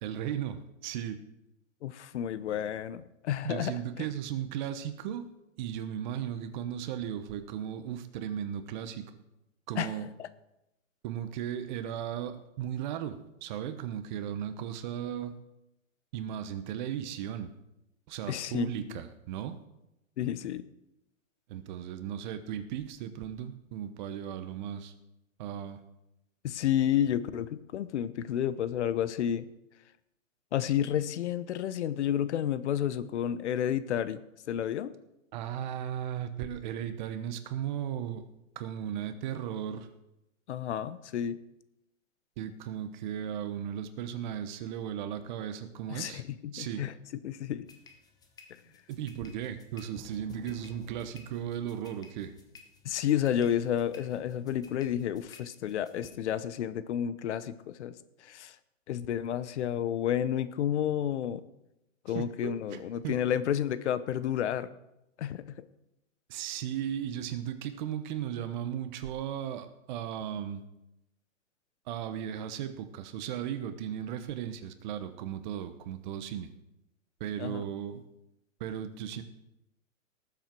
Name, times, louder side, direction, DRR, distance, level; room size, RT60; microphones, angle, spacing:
voice 1, 0.0-1.2 3.4-5.3 5.6-9.0 9.7-10.1 11.0-15.3 16.1-17.5 18.1-19.6 21.5-24.9 25.4-25.8 35.3-38.2 38.5-39.9 42.4-46.2 46.5-46.9 48.9-52.3 62.1-63.2 66.3-70.6 71.9-76.5 77.2-78.0 78.6-79.2, right 10 dB, 35° right, 11 dB, 1.0 m, -36 dB
voice 2, 1.8-3.7 4.0-4.1 9.8-10.3 18.3-19.0 20.2-20.7 26.4-29.5 30.5-34.2 34.5-34.9 40.5-41.4 45.9-46.9 47.2-47.7 52.8-57.9 58.2-58.6 58.9-61.4 62.0-64.7 65.2-65.6 77.4-77.6, left 10 dB, 55° left, 14 dB, 0.9 m, -31 dB
sound 1, 47.6-56.1, left 4 dB, 10° left, 0.8 m, -54 dB
19.0 x 7.7 x 4.6 m, 0.89 s
hypercardioid pair, 150°, 40 cm